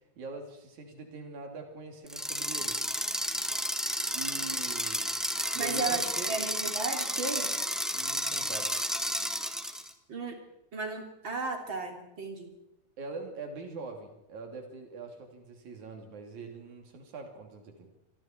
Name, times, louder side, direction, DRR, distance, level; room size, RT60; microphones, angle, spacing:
voice 1, 0.2-2.8 4.1-5.1 5.5-6.3 7.9-8.8 13.0-17.9, right 3 dB, 75° right, 3 dB, 4.3 m, -43 dB
sound 1, 2.1-9.9, equal, ahead, 0.8 m, -32 dB
voice 2, 5.5-7.5 10.1-10.4 10.7-12.5, right 4 dB, 40° right, 3 dB, 3.6 m, -34 dB
26.0 x 25.5 x 4.5 m, 0.87 s
omnidirectional pair, 3.4 m